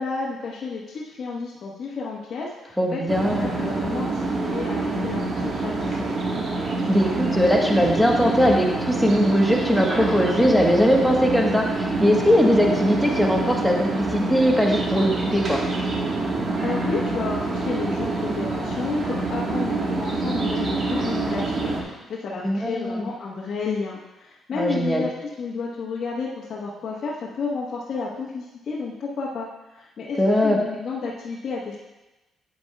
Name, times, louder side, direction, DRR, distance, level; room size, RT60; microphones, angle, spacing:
voice 1, 0.0-3.0 3.4-6.2 16.6-25.1 25.4-31.8, left 4 dB, 60° left, -6 dB, 1.1 m, -31 dB
voice 2, 2.8-3.4 6.8-15.6 22.4-23.1 24.5-25.1 30.2-30.6, equal, 5° left, 0 dB, 1.2 m, -20 dB
sound 1, 3.1-21.8, right 3 dB, 50° right, 1.4 m, -26 dB
9.1 x 7.8 x 2.3 m, 1.1 s
cardioid pair, 90°, 0 cm